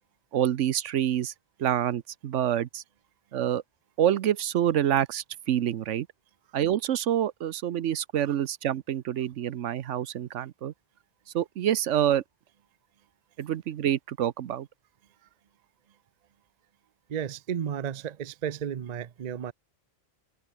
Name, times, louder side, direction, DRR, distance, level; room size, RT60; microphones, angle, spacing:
voice 1, 0.3-1.3 1.6-2.8 3.3-3.6 4.0-6.1 6.5-10.7 11.3-12.2 13.4-14.7, right 10 dB, 75° right, 1.0 m, -27 dB
voice 2, 17.1-19.5, right 8 dB, 45° right, 0.6 m, -33 dB
omnidirectional pair, 1.3 m